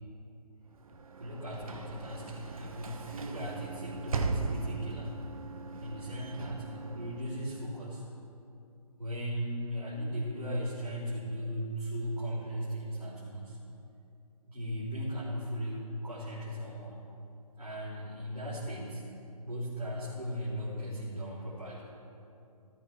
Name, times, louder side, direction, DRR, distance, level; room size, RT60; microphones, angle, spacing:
Sliding door / Slam, 0.7-7.7, right 3 dB, 60° right, 1.1 m, -38 dB
voice 1, 1.2-5.1 5.8-8.0 9.0-13.6 14.4-16.9 17.6-19.1 19.4-21.8, equal, 80° right, -8 dB, 3.1 m, -37 dB
14.0 x 13.5 x 3.4 m, 2.7 s
figure-of-eight pair, 140°, 20 cm